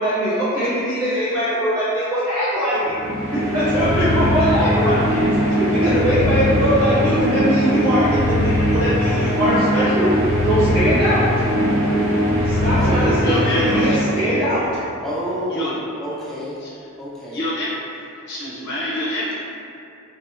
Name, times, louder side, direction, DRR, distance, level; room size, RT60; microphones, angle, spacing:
voice 1, 0.0-2.9 3.5-5.2 5.5-10.1 10.4-11.3 12.4-14.8, equal, 55° right, -19 dB, 1.2 m, -21 dB
sound 1, 2.9-14.8, equal, 80° right, 0.9 m, -20 dB
voice 2, 12.7-13.5 15.0-16.6 17.0-17.5, equal, ahead, -8 dB, 0.3 m, -28 dB
voice 3, 13.2-14.0 15.5-15.7 16.6-16.8 17.3-17.7 18.3-19.3, left 1 dB, 55° left, -7 dB, 0.6 m, -26 dB
2.8 x 2.0 x 2.4 m, 2.6 s
head